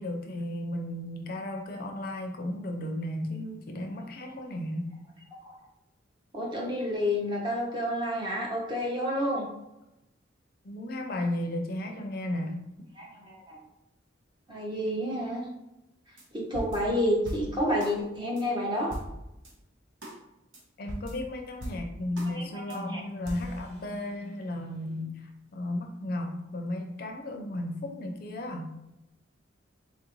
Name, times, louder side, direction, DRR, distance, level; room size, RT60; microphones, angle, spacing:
voice 1, 0.0-4.9 10.6-12.6 20.8-28.7, left 1 dB, 50° left, 3 dB, 0.4 m, -34 dB
voice 2, 6.3-9.5 13.0-13.6 14.5-15.5 16.3-18.9 22.4-23.0, equal, 25° right, -3 dB, 0.8 m, -29 dB
sound 1, 16.2-16.3 16.5-18.0 18.4-18.5 18.9-19.5 20.0-20.2 20.5-20.6 20.9-22.3 22.7-22.8 23.3-24.4, equal, 90° right, 1.0 m, -40 dB
4.1 x 2.5 x 3.0 m, 0.90 s
head